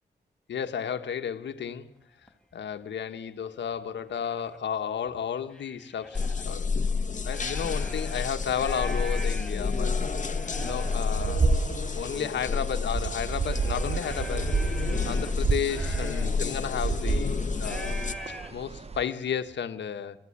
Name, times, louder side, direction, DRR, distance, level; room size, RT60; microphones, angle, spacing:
voice 1, 0.5-1.9 2.5-6.7 7.2-9.9 10.6-11.5 11.9-14.5 15.0-20.2, left 8 dB, 80° left, 8 dB, 1.5 m, -33 dB
sound 1, 1.6-1.7 2.3-2.5 3.2-3.3 3.7-4.6 5.1-6.5 7.1-19.6, equal, 5° left, 4.0 m, -44 dB
sound 2, 6.1-18.1, left 4 dB, 45° left, 1.4 m, -30 dB
sound 3, 10.6-19.0, right 5 dB, 35° right, 0.8 m, -31 dB
23.0 x 15.5 x 9.8 m, 0.83 s
cardioid pair, 60°, 18 cm